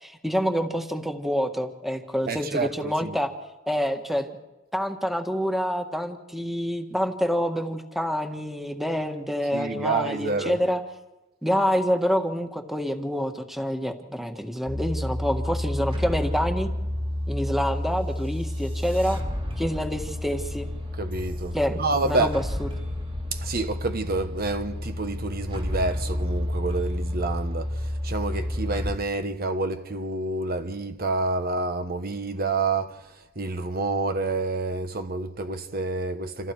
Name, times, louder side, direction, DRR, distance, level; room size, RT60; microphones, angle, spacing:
voice 1, 0.0-3.3 3.7-4.3 4.7-10.8 11.4-16.7 17.3-19.2 19.6-20.7 21.5-22.7, equal, ahead, 1.7 m, -27 dB
voice 2, 2.3-3.2 9.5-10.6 21.0-22.3 23.3-33.1 33.4-36.5, right 3 dB, 50° right, 1.2 m, -28 dB
sound 1, 14.7-29.0, left 1 dB, 25° right, 2.3 m, -30 dB
28.0 x 28.0 x 4.8 m
head